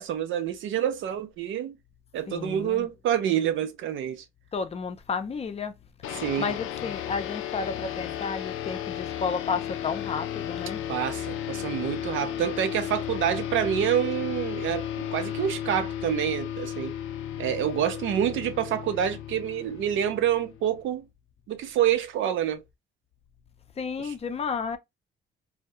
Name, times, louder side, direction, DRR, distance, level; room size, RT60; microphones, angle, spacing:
voice 1, 0.0-1.8 2.1-4.2 6.1-6.5 10.9-16.9 17.4-21.1 21.5-22.6 24.0-24.1, right 10 dB, 75° right, 0.5 m, -27 dB
voice 2, 2.3-2.9 4.5-5.7 6.0-10.8 23.8-24.8, left 5 dB, 30° left, 0.5 m, -32 dB
sound 1, 6.0-20.8, left 10 dB, 90° left, 0.4 m, -34 dB
2.3 x 2.0 x 2.6 m
cardioid pair, 90°, 20 cm